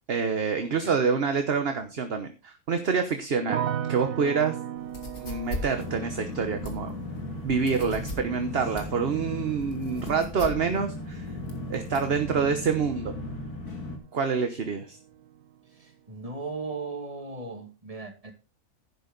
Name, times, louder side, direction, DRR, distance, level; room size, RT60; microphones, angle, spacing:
voice 1, 0.1-4.6 5.2-6.9 7.4-11.3 11.7-13.2 14.1-15.0, right 5 dB, 45° right, 1.2 m, -27 dB
sound 1, 3.5-14.6 14.8-15.6, right 9 dB, 90° right, 1.4 m, -39 dB
sound 2, 4.8-12.2, left 2 dB, 55° left, 2.8 m, -40 dB
sound 3, 5.7-14.0, left 2 dB, 75° left, 2.9 m, -37 dB
voice 2, 9.9-10.4 15.7-18.3, right 3 dB, 20° right, 2.2 m, -38 dB
11.0 x 9.7 x 4.0 m
omnidirectional pair, 1.6 m